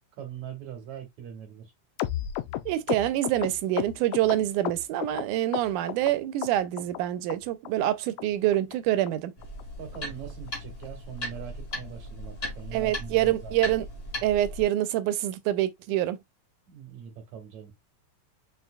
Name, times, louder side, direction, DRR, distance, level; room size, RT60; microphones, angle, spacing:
voice 1, 0.2-1.7 9.8-13.6 16.7-17.7, right 8 dB, 65° right, 2.9 m, -41 dB
sound 1, 2.0-5.2 5.5-6.1 6.4-7.0 7.3-7.4 7.6-7.9 8.2-8.3 8.5-8.7 9.1-9.2 9.4-9.6 9.9-10.0 10.3-10.5 10.8-10.9 11.2-11.4 11.7-11.8, left 13 dB, 80° left, 1.7 m, -33 dB
voice 2, 2.7-9.3 12.7-13.9 14.2-16.2, right 13 dB, 85° right, 2.1 m, -26 dB
sound 2, 9.4-14.6, left 1 dB, 25° left, 1.5 m, -37 dB
6.0 x 3.9 x 2.2 m
omnidirectional pair, 3.6 m